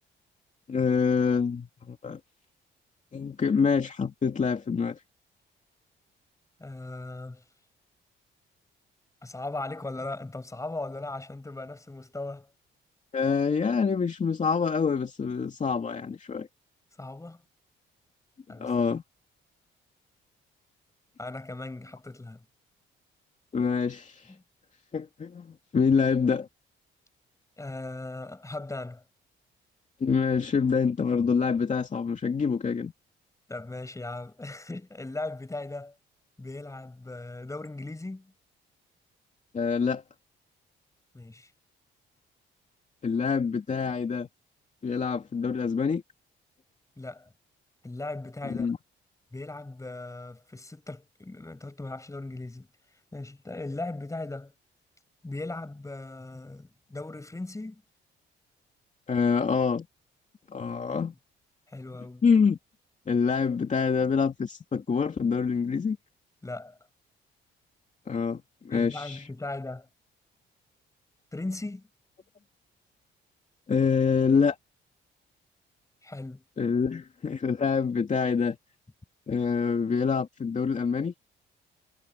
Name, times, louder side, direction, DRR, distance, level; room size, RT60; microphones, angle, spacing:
voice 1, 0.7-2.2 3.1-5.0 13.1-16.5 18.6-19.0 23.5-24.3 24.9-26.5 30.0-32.9 39.5-40.0 43.0-44.3 44.8-46.0 48.4-48.8 59.1-59.9 60.5-61.1 62.2-62.6 63.1-66.0 68.1-69.3 73.7-74.6 76.6-78.6 79.3-81.1, left 5 dB, 40° left, 2.6 m, -26 dB
voice 2, 6.6-7.4 9.2-12.5 17.0-17.4 18.5-18.7 21.2-22.4 24.3-24.4 27.6-29.0 33.5-35.9 36.4-38.3 41.1-41.5 47.0-47.3 47.8-48.7 49.3-52.7 53.1-54.5 55.2-57.8 60.9-61.1 61.7-62.2 66.4-66.8 68.7-69.9 71.3-71.9 76.0-76.4, left 2 dB, 15° left, 5.8 m, -38 dB
cardioid pair, 90°, 20 cm